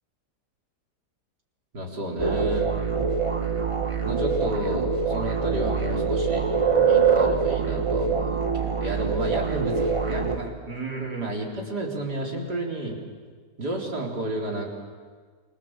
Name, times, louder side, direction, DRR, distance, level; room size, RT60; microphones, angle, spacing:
voice 1, 1.7-2.7 4.0-6.5 6.9-13.0 13.6-14.7, right 1 dB, 70° right, -1 dB, 4.4 m, -31 dB
sound 1, 2.2-10.4, right 5 dB, 20° right, 1.1 m, -24 dB
28.5 x 23.0 x 7.5 m, 1.5 s
omnidirectional pair, 1.8 m